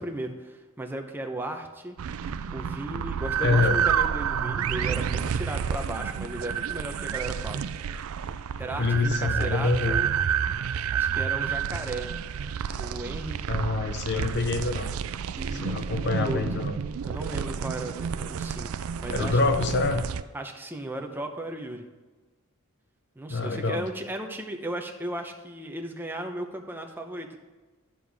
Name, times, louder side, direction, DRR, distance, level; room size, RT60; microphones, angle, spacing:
voice 1, 0.0-2.0 2.5-7.6 8.6-10.1 10.9-12.1 12.7-13.4 15.3-16.6 17.0-18.7 19.0-19.4 20.3-21.9 23.2-27.4, right 1 dB, 10° right, 3 dB, 0.8 m, -35 dB
sound 1, 2.0-20.2, right 8 dB, 70° right, 0.4 m, -30 dB
voice 2, 3.4-3.8 8.8-10.0 13.5-14.9 15.5-16.8 19.1-20.1 23.3-23.9, left 3 dB, 50° left, 8 dB, 0.6 m, -26 dB
10.5 x 6.9 x 3.5 m, 1.3 s
head